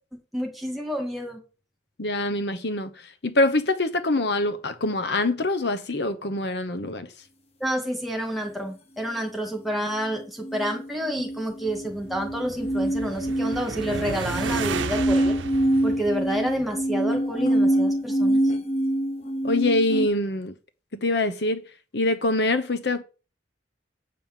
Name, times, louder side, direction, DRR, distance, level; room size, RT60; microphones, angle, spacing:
voice 1, 0.1-1.4 7.6-15.3 15.8-18.4, equal, ahead, 2.2 m, -29 dB
voice 2, 2.0-7.1 19.4-20.5 20.9-21.6 21.9-23.0, left 2 dB, 60° left, 0.9 m, -24 dB
sound 1, 10.4-20.1, right 1 dB, 35° left, 1.2 m, -25 dB
sound 2, 11.5-17.0, right 5 dB, 90° right, 0.7 m, -34 dB
8.6 x 5.5 x 7.4 m
head